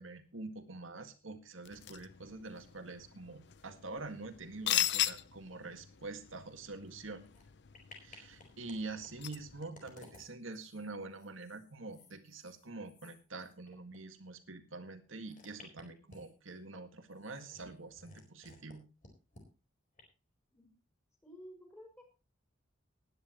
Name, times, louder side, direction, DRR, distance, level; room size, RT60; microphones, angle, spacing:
voice 1, 0.0-7.2 8.0-18.8, right 3 dB, 75° right, 8 dB, 1.9 m, -46 dB
sound 1, 1.6-9.6, left 12 dB, 55° left, 0.7 m, -39 dB
sound 2, 7.3-7.4 7.7-8.8 9.0-14.0 14.3-14.4 15.2-16.5 17.1-18.8 19.0-19.4 20.0-20.1, left 2 dB, 40° left, 4.3 m, -57 dB
voice 2, 21.2-22.0, equal, 10° left, 1 dB, 5.9 m, -52 dB
19.5 x 10.5 x 3.0 m, 0.30 s
head